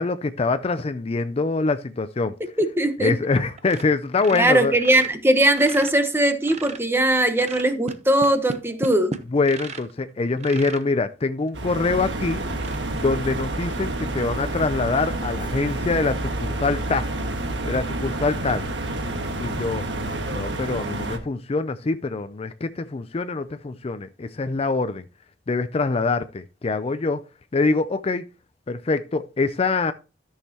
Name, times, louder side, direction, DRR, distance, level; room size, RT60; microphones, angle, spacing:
voice 1, 0.0-2.4 3.0-4.7 9.3-12.4 12.9-17.1 17.6-18.7 19.4-19.9 20.3-25.1 25.5-27.2 27.5-28.3 28.7-29.9, left 3 dB, 35° left, 0.4 m, -24 dB
voice 2, 2.6-3.1 4.4-9.1, right 1 dB, 15° right, 1.0 m, -20 dB
sound 1, 3.0-3.3 3.6-3.9 4.1-6.9 7.4-10.0 10.4-10.9 11.5-11.6 12.0-12.1 12.5-12.8, right 3 dB, 40° right, 0.7 m, -35 dB
sound 2, 11.5-21.2, right 2 dB, 90° right, 1.4 m, -29 dB
13.0 x 6.4 x 2.9 m
head